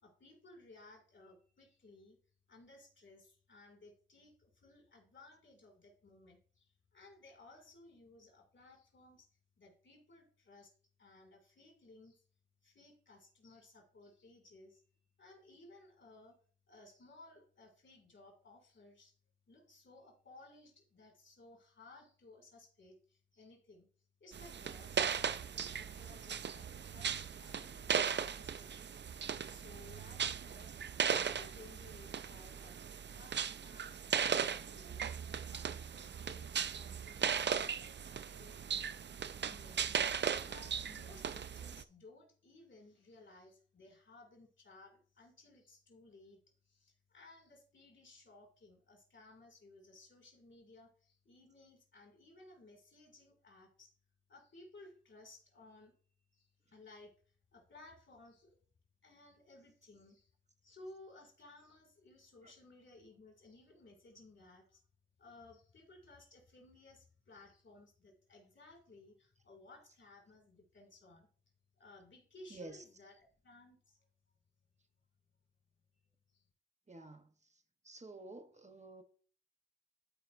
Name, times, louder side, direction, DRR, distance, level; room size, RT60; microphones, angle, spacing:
voice 1, 0.0-2.2 2.5-9.3 9.6-10.7 11.0-12.2 12.6-14.8 15.2-16.4 16.7-19.1 19.5-23.9 24.2-28.9 29.2-32.8 33.1-35.0 35.4-38.9 39.4-53.9 54.3-55.9 56.3-57.2 57.5-58.6 59.0-60.3 60.6-64.8 65.2-71.3 71.7-74.0 76.3-76.4, left 2 dB, 80° left, 2.4 m, -59 dB
sound 1, 24.3-41.8, right 7 dB, 70° right, 0.4 m, -38 dB
voice 2, 76.9-77.2 77.9-79.0, right 2 dB, 35° right, 1.0 m, -50 dB
12.5 x 4.8 x 2.6 m
wide cardioid pair, 60°, 19 cm